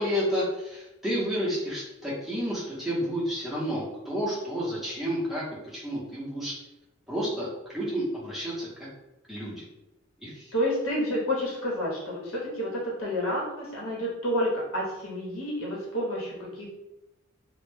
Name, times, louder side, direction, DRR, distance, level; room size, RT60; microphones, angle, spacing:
voice 1, 0.0-5.4 5.7-6.5 7.1-8.7 9.3-9.6 10.2-10.5, equal, ahead, -8 dB, 0.7 m, -30 dB
voice 2, 10.5-16.7, equal, 85° left, -4 dB, 0.9 m, -29 dB
2.1 x 2.1 x 3.1 m, 0.94 s
head